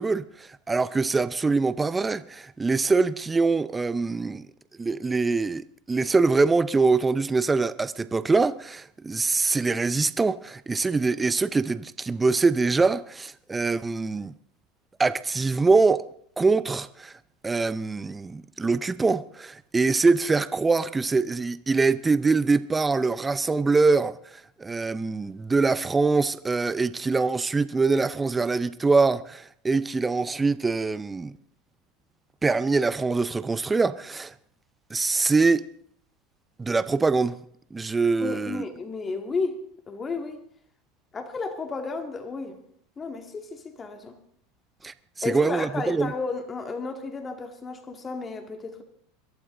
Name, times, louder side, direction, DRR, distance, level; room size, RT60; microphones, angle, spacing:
voice 1, 0.0-4.5 4.8-14.3 15.0-16.0 16.4-17.1 17.4-31.3 32.4-34.3 34.9-35.7 36.6-37.4 37.7-38.6 44.8-44.9 45.2-46.1, right 4 dB, 15° right, 0.5 m, -24 dB
voice 2, 38.2-39.6 39.9-40.4 41.1-42.6 43.0-44.2 45.2-48.8, left 4 dB, 25° left, 2.2 m, -32 dB
22.0 x 11.5 x 3.9 m
supercardioid pair, 105°, 0 cm